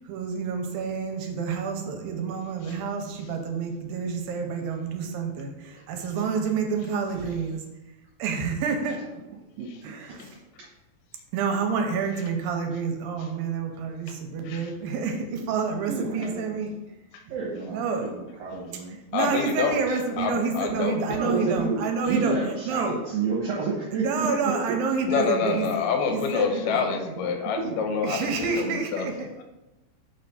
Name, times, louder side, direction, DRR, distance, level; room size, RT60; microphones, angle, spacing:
voice 1, 0.1-7.7 8.2-9.1 9.8-10.3 11.3-16.8 17.7-18.1 18.7-23.0 23.9-25.7 26.1-27.1 28.0-29.3, right 5 dB, 80° right, 3 dB, 2.3 m, -29 dB
voice 2, 9.6-10.2 15.9-16.5 17.3-19.0 21.1-21.8 22.1-24.5 27.2-27.3 27.6-27.8, right 4 dB, 65° right, -4 dB, 2.1 m, -30 dB
voice 3, 19.1-19.8 20.2-21.3 25.0-29.1, left 6 dB, 75° left, 4 dB, 1.7 m, -27 dB
6.5 x 3.3 x 5.6 m, 1.0 s
omnidirectional pair, 4.3 m